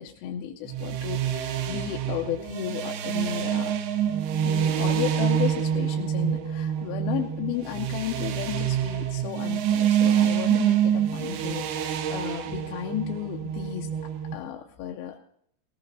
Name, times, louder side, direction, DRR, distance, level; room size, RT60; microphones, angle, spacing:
voice 1, 0.0-3.8 4.4-15.2, left 10 dB, 80° left, 2 dB, 2.5 m, -34 dB
sound 1, 0.7-14.3, right 9 dB, 80° right, 2.8 m, -26 dB
18.0 x 16.5 x 2.7 m, 0.72 s
omnidirectional pair, 4.5 m